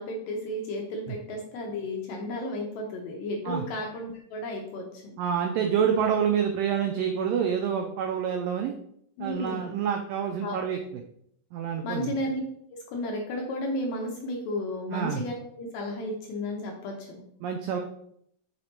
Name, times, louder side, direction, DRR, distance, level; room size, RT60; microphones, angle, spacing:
voice 1, 0.0-5.2 9.2-9.8 10.4-10.9 11.8-12.4 12.7-17.2, left 1 dB, 75° left, 1 dB, 2.1 m, -33 dB
voice 2, 5.2-8.8 9.2-11.0 11.5-12.1 14.9-15.2 17.4-17.8, right 7 dB, 90° right, 3 dB, 1.9 m, -27 dB
6.6 x 4.1 x 4.4 m, 0.70 s
omnidirectional pair, 4.7 m